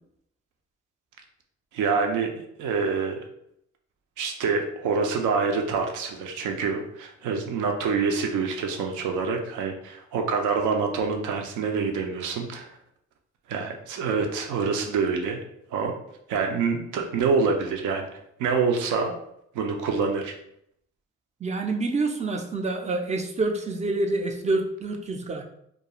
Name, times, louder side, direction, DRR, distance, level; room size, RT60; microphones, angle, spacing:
voice 1, 1.7-3.2 4.2-12.7 13.5-15.4 15.7-15.9 16.3-18.1 18.4-19.1 19.5-20.3, right 5 dB, 85° right, 3 dB, 0.5 m, -26 dB
voice 2, 21.4-25.4, right 3 dB, 25° right, 3 dB, 0.4 m, -27 dB
2.4 x 2.3 x 2.8 m, 0.73 s
cardioid pair, 90°, 30 cm